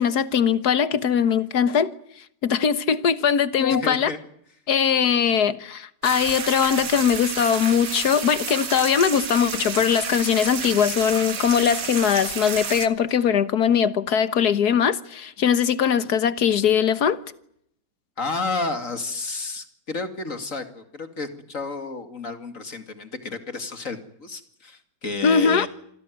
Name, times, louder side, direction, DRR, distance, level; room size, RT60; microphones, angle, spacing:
voice 1, 0.0-1.9 2.4-4.1 4.7-17.2 25.2-25.7, left 7 dB, 65° left, 1.7 m, -21 dB
voice 2, 3.7-4.2 18.2-25.7, left 3 dB, 45° left, 2.8 m, -31 dB
sound 1, 6.0-12.9, right 6 dB, 50° right, 2.0 m, -31 dB
27.0 x 17.5 x 9.4 m
omnidirectional pair, 1.9 m